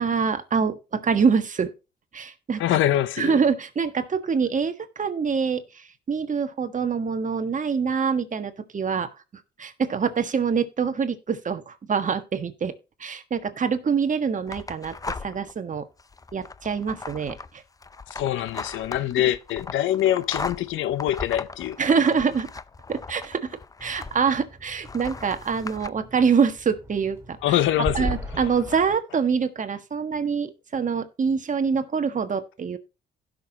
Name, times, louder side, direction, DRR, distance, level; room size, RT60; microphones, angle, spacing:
voice 1, 0.0-1.7 2.1-2.8 3.2-9.1 9.6-12.7 13.0-15.9 16.3-17.4 21.8-22.5 22.9-27.4 27.9-32.8, right 6 dB, 40° right, 1.4 m, -25 dB
voice 2, 2.6-3.4 18.1-21.8 27.4-28.2, left 12 dB, 80° left, 0.8 m, -24 dB
sound 1, 14.5-15.5 16.0-24.4 24.8-25.9, left 4 dB, 15° left, 0.5 m, -38 dB
sound 2, 23.8-29.0, equal, 15° right, 2.3 m, -37 dB
16.0 x 6.3 x 2.9 m
cardioid pair, 90°, 20 cm